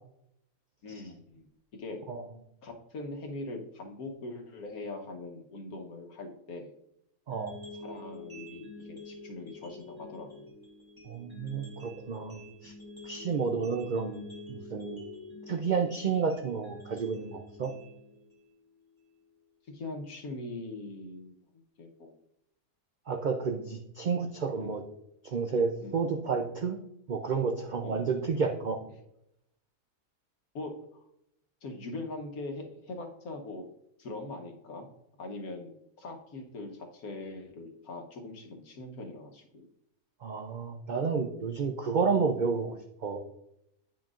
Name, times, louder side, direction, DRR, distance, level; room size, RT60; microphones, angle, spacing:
voice 1, 0.8-1.5 1.7-2.0 2.6-6.7 7.7-10.4 19.7-22.1 24.6-24.7 25.8-26.0 27.8-28.1 30.5-30.7 31.6-33.7 34.0-34.9 35.2-39.7, left 2 dB, 85° left, 3 dB, 1.5 m, -42 dB
sound 1, 7.3-19.3, left 2 dB, 20° right, 2.0 m, -48 dB
voice 2, 11.1-12.7 13.1-15.1 15.5-17.7 23.1-24.8 25.2-26.8 27.1-28.8 40.2-43.2, right 5 dB, 85° right, 4 dB, 0.4 m, -31 dB
8.8 x 5.9 x 2.4 m, 0.80 s
omnidirectional pair, 1.5 m